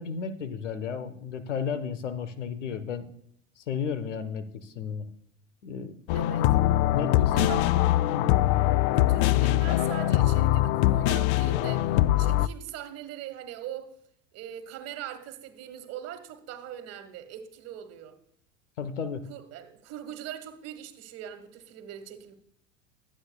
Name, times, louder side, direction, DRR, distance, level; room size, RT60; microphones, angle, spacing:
voice 1, 0.0-3.1 3.6-5.1 5.6-5.9 6.9-7.6 8.1-8.3 18.8-19.2, left 6 dB, 70° left, 1.2 m, -33 dB
sound 1, 6.1-12.5, left 15 dB, 45° left, 0.4 m, -23 dB
voice 2, 6.1-6.5 7.3-7.7 8.9-11.9 12.2-13.9 14.3-18.2 19.3-22.3, right 10 dB, 40° right, 1.7 m, -41 dB
22.0 x 8.9 x 2.3 m
figure-of-eight pair, 80°, 38 cm